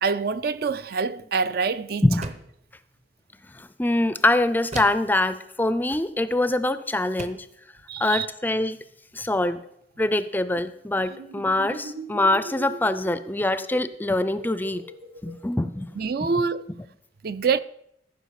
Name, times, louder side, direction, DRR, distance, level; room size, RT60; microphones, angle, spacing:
voice 1, 0.0-2.0 7.9-8.3 16.0-16.6 17.2-17.6, right 5 dB, 55° right, 0.4 m, -25 dB
sound 1, 2.2-2.6 4.7-5.2 6.5-6.6 7.2-7.5, right 2 dB, 35° right, 0.8 m, -36 dB
voice 2, 3.5-7.5 8.0-8.8 9.1-9.6 10.0-14.8 15.2-15.9, left 2 dB, 10° left, 0.4 m, -24 dB
sound 2, 11.0-16.3, right 1 dB, 75° right, 1.4 m, -41 dB
14.0 x 5.6 x 6.5 m
head